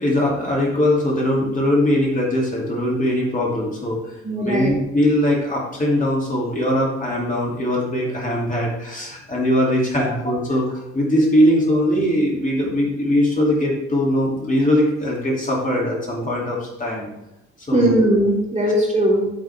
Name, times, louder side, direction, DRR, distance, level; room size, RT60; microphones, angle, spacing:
voice 1, 0.0-4.1 4.4-17.1 17.7-17.9, left 1 dB, 25° left, -3 dB, 2.8 m, -21 dB
voice 2, 4.2-4.7 10.0-10.1 17.7-19.3, right 1 dB, 20° right, -3 dB, 2.9 m, -19 dB
9.3 x 7.1 x 3.6 m, 0.92 s
figure-of-eight pair, 55°, 34 cm